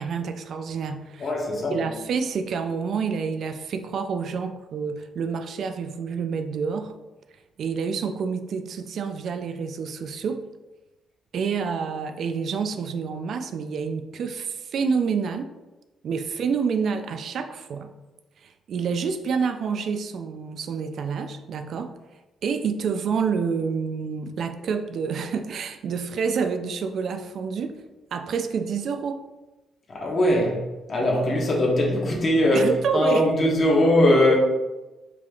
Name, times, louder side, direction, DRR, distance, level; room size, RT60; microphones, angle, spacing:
voice 1, 0.0-1.3 1.7-6.9 7.6-10.4 11.3-15.5 16.0-17.9 18.4-21.9 22.4-27.8 28.1-29.2 32.5-33.3, right 5 dB, 65° right, 7 dB, 0.3 m, -28 dB
voice 2, 1.2-1.8 29.9-34.4, left 1 dB, 45° left, -2 dB, 1.2 m, -21 dB
4.9 x 3.4 x 2.4 m, 1.1 s
cardioid pair, 90°, 0 cm